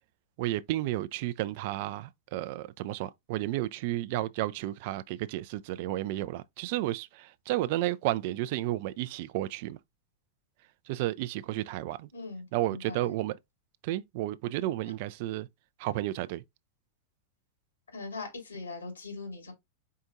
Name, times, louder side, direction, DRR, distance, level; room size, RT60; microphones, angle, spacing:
voice 1, 0.4-9.8 10.9-12.1 12.5-13.4 13.8-15.5 15.8-16.4, right 15 dB, 50° right, 0.3 m, -32 dB
voice 2, 12.1-13.2 14.9-15.0 17.9-19.5, left 3 dB, 75° left, 2.6 m, -41 dB
4.6 x 4.3 x 2.5 m
figure-of-eight pair, 90°, 0 cm